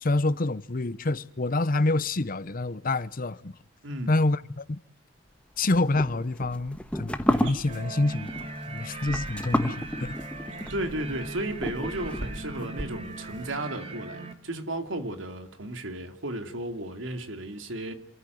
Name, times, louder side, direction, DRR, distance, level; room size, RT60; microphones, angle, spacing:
voice 1, 0.0-3.5 4.1-4.8 5.6-10.1, left 2 dB, 45° left, 0.8 m, -27 dB
sound 1, 5.6-12.7, equal, 5° left, 1.4 m, -31 dB
sound 2, 7.3-13.6, right 1 dB, 65° right, 3.3 m, -46 dB
sound 3, 7.7-14.3, right 2 dB, 30° right, 2.7 m, -39 dB
voice 2, 10.7-17.9, right 1 dB, 85° right, 2.8 m, -34 dB
27.5 x 14.5 x 9.3 m
head